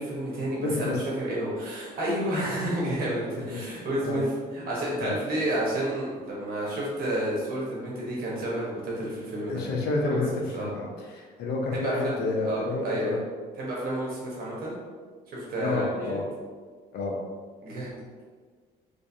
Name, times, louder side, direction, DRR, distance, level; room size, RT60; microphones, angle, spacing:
voice 1, 0.0-9.6 10.0-10.2 10.5-10.7 11.7-12.1 12.4-12.6 12.8-13.2 13.6-14.7 15.3-16.2 17.6-17.9, right 1 dB, 60° right, -5 dB, 1.4 m, -30 dB
voice 2, 0.6-1.0 3.3-4.2 5.0-5.2 9.5-13.2 15.6-16.2 16.9-17.2, left 2 dB, 75° left, -1 dB, 0.8 m, -30 dB
3.2 x 3.1 x 2.8 m, 1.5 s
cardioid pair, 110°, 17 cm